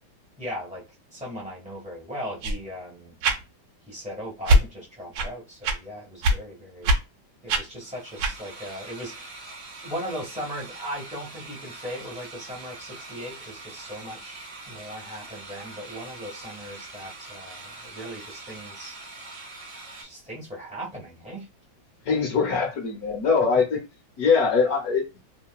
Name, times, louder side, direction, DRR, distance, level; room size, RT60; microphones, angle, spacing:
voice 1, 0.4-0.8 1.1-3.1 3.9-6.9 7.4-9.5 9.8-19.0 20.0-21.5, equal, 5° right, 1.2 m, -38 dB
sound 1, 2.4-2.6 3.2-3.4 4.4-4.6 5.1-5.3 5.6-5.8 6.2-6.4 6.8-7.0 7.5-7.6 8.2-8.4, right 1 dB, 80° right, 1.3 m, -21 dB
sound 2, 7.7-20.0, right 3 dB, 50° right, 1.2 m, -43 dB
voice 2, 22.0-23.8 24.2-25.2, left 5 dB, 60° left, 1.2 m, -22 dB
3.0 x 2.7 x 2.3 m
omnidirectional pair, 2.0 m